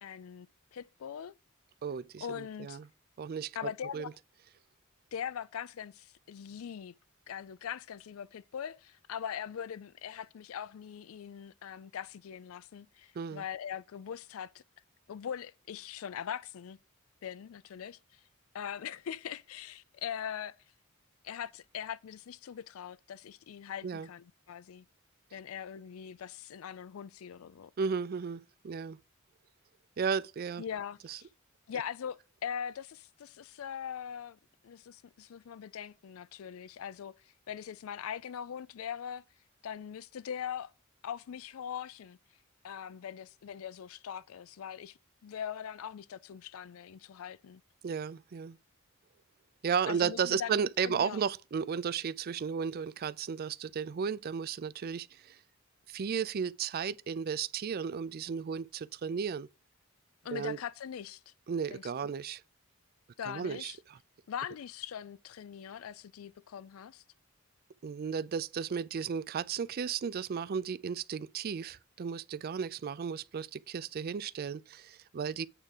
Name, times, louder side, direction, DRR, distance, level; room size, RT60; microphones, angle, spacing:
voice 1, 0.0-1.3 2.2-2.8 3.5-4.1 5.1-6.9 7.3-14.6 15.1-16.8 17.2-18.2 18.5-20.6 21.2-24.9 25.3-27.7 30.6-31.3 31.7-39.2 39.6-40.7 41.0-42.2 42.6-47.6 49.9-50.5 50.8-51.2 60.2-61.3 61.7-62.1 63.2-63.8 64.3-67.0, left 8 dB, 80° left, 0.4 m, -41 dB
voice 2, 1.8-2.8 3.2-3.6 3.9-4.1 13.2-13.4 23.8-24.1 27.8-29.0 30.0-30.6 31.1-31.2 47.8-48.6 49.6-55.4 55.9-59.5 60.3-60.6 61.5-62.4 63.3-64.0 67.8-75.5, right 6 dB, 45° right, 0.4 m, -34 dB
8.9 x 3.6 x 6.6 m
head